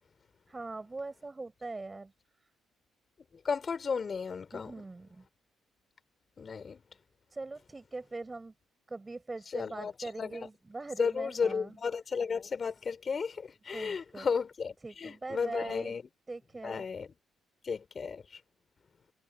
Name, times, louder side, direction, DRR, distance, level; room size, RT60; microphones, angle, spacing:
voice 1, 0.5-2.1 4.5-5.2 7.3-8.5 8.9-11.8 13.7-14.3 14.8-15.9 16.3-16.8, right 3 dB, 20° right, 5.4 m, -41 dB
voice 2, 3.4-4.8 6.4-6.8 9.5-9.9 10.2-10.5 11.0-16.0 16.6-17.1 17.6-18.4, left 5 dB, 40° left, 4.9 m, -34 dB
cardioid pair, 90°, 0 cm